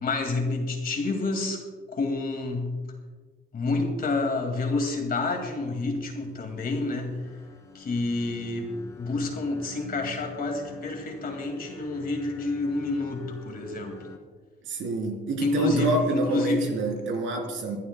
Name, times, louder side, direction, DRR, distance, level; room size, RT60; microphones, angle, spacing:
voice 1, 0.0-1.6 1.9-2.8 3.5-7.3 7.7-14.0 15.4-16.9, left 3 dB, 50° left, 3 dB, 2.2 m, -28 dB
sound 1, 5.9-14.2, left 3 dB, 15° left, 2.3 m, -46 dB
voice 2, 14.7-17.8, right 3 dB, 75° right, 1 dB, 3.5 m, -27 dB
23.5 x 11.0 x 2.3 m, 1.5 s
cardioid pair, 90°, 20 cm